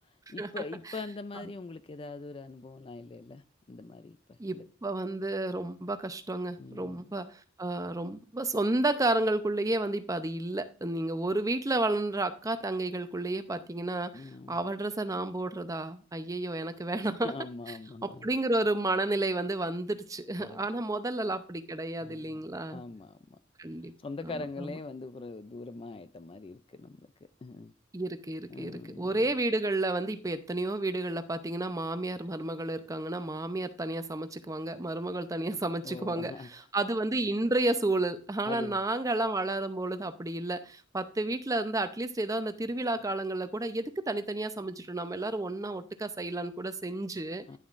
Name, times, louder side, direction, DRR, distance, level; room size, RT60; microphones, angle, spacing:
voice 1, 0.0-4.7 6.6-7.0 14.1-14.6 17.2-18.3 20.4-20.6 22.0-23.4 24.0-27.7 28.5-29.2 35.8-36.5 38.5-38.8 47.5-47.6, left 3 dB, 25° left, 0.4 m, -42 dB
voice 2, 4.4-14.2 14.5-17.3 18.0-22.8 23.6-23.9 27.9-36.3 36.7-47.4, right 2 dB, 15° right, 0.6 m, -31 dB
11.0 x 7.0 x 2.5 m
head